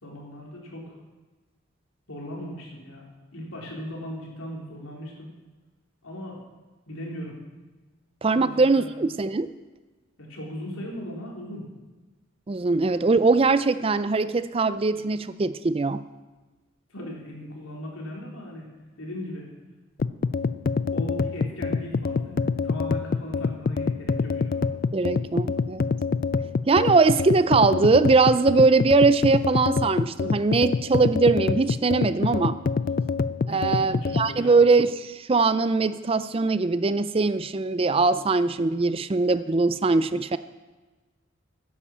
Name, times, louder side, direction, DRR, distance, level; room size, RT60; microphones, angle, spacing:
voice 1, 0.0-0.9 2.1-3.0 3.3-5.3 6.0-6.4 6.9-7.4 8.3-8.9 10.2-11.7 16.9-18.7 19.0-19.5 20.9-24.8 33.4-34.5, equal, 85° left, -2 dB, 4.0 m, -38 dB
voice 2, 8.2-9.5 12.5-16.0 24.9-25.8 26.7-32.6 33.5-40.4, right 3 dB, 25° right, 14 dB, 0.4 m, -21 dB
sound 1, 20.0-34.3, left 4 dB, 45° left, 0.3 m, -26 dB
11.0 x 10.0 x 7.3 m, 1.3 s
head